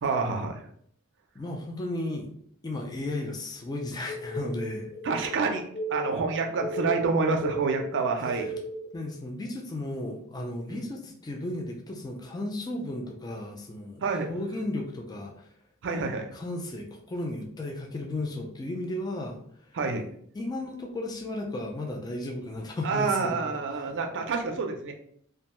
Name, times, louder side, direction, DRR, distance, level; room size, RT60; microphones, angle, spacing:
voice 1, 0.0-0.6 5.0-5.6 5.9-8.6 10.7-10.9 14.0-14.3 15.8-16.3 19.7-20.0 22.8-24.9, right 4 dB, 60° right, 4 dB, 0.5 m, -28 dB
voice 2, 1.4-2.3 2.6-4.9 8.2-8.5 8.9-15.6 16.3-19.8 20.3-23.8, left 1 dB, 20° left, 1 dB, 0.3 m, -35 dB
sound 1, 4.1-8.9, right 1 dB, 60° left, 0.6 m, -35 dB
2.5 x 2.2 x 2.9 m, 0.64 s
head